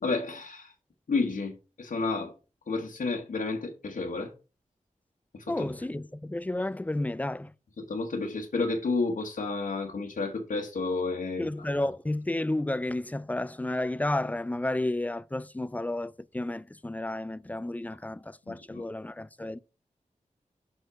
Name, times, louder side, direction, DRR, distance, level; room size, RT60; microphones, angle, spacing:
voice 1, 0.0-0.7 1.1-2.3 2.7-4.3 5.3-5.6 7.8-11.5 18.5-18.8, left 3 dB, 85° left, 1.1 m, -31 dB
voice 2, 5.5-7.5 11.4-19.6, left 1 dB, 10° left, 0.3 m, -32 dB
6.2 x 4.6 x 4.9 m
wide cardioid pair, 85°, 13 cm